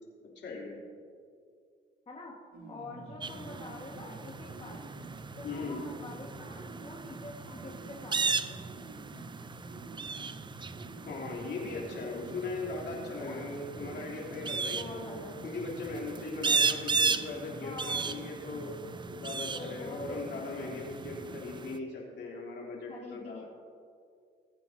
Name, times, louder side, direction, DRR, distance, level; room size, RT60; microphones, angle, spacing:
voice 1, 0.2-0.8 5.4-5.8 11.0-15.1 15.4-18.7 19.2-23.5, left 3 dB, 60° left, -3 dB, 3.3 m, -39 dB
voice 2, 2.1-4.9 5.4-8.6 13.2-13.4 14.7-15.3 17.6-18.1 19.5-20.7 22.9-23.4, left 2 dB, 30° left, -3 dB, 1.6 m, -46 dB
sound 1, 2.5-21.4, right 2 dB, 65° right, 3.0 m, -48 dB
sound 2, 3.2-21.8, right 5 dB, 25° right, 0.5 m, -36 dB
20.0 x 9.1 x 2.8 m, 2.2 s
cardioid pair, 90°, 20 cm